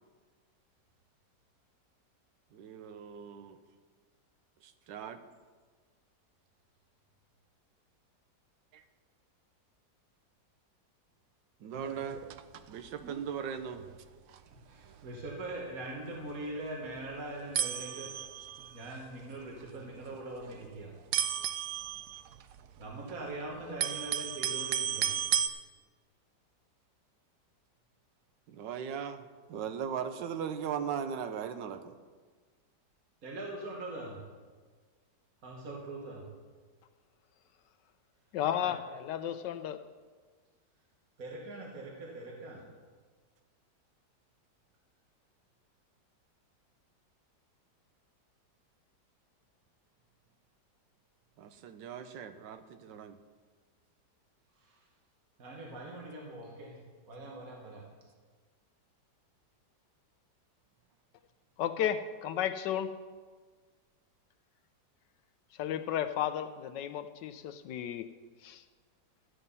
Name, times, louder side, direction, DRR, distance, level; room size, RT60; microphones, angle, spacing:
voice 1, 2.5-3.6 4.6-5.2 8.7-8.8 11.6-12.2 12.7-13.8 28.5-29.2 29.5-31.9 51.4-53.2, right 7 dB, 85° right, 9 dB, 1.5 m, -38 dB
sound 1, 11.7-12.7 13.0-13.2 13.8-14.0 14.3-14.4 14.8-14.9 15.2-15.4 16.2-16.3 17.0-17.1 17.5-18.9 19.7-20.2 20.4-20.6 21.1-23.1 23.5-25.5, right 9 dB, 70° right, 0.8 m, -34 dB
voice 2, 14.5-18.2 18.7-21.0 22.8-25.3 33.2-34.3 35.4-36.3 38.6-38.8 41.2-42.8 54.6-54.9 55.4-57.8, right 2 dB, 55° right, -2 dB, 1.9 m, -42 dB
voice 3, 38.3-39.8 61.6-62.9 65.6-68.1 68.4-68.6, left 10 dB, 80° left, 10 dB, 1.2 m, -33 dB
13.0 x 9.0 x 5.4 m, 1.5 s
omnidirectional pair, 1.9 m